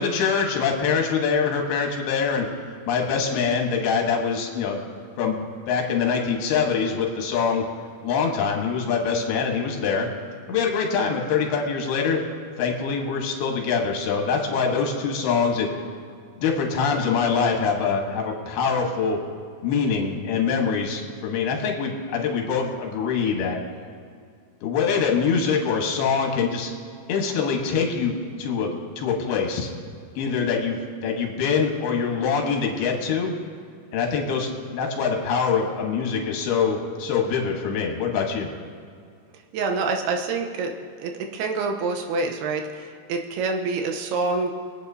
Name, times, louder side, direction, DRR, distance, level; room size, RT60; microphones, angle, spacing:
voice 1, 0.0-2.5 2.9-4.8 5.2-5.4 5.7-7.6 8.0-10.1 10.5-12.2 12.6-15.7 16.4-19.2 19.6-23.6 24.6-26.7 27.1-28.7 29.0-29.7 30.2-33.3 33.9-38.5, left 5 dB, 80° left, 1 dB, 3.2 m, -24 dB
voice 2, 39.5-40.7 41.0-44.5, right 3 dB, 85° right, 3 dB, 2.9 m, -26 dB
23.0 x 8.7 x 2.7 m, 2.2 s
omnidirectional pair, 4.5 m